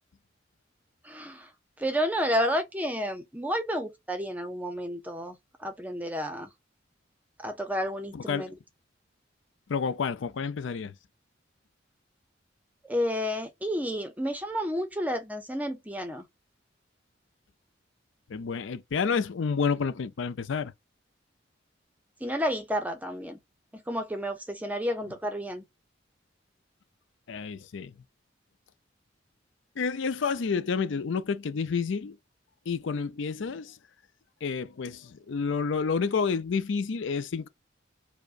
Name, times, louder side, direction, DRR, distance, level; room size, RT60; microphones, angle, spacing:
voice 1, 1.0-1.5 1.8-6.5 7.4-8.5 12.8-16.2 22.2-23.4 23.7-25.6, equal, 10° right, 0.5 m, -31 dB
voice 2, 8.1-8.5 9.7-10.9 18.3-20.7 27.3-27.9 29.8-32.2 32.7-33.8 34.4-37.5, left 5 dB, 75° left, 0.5 m, -29 dB
4.7 x 2.1 x 2.4 m
head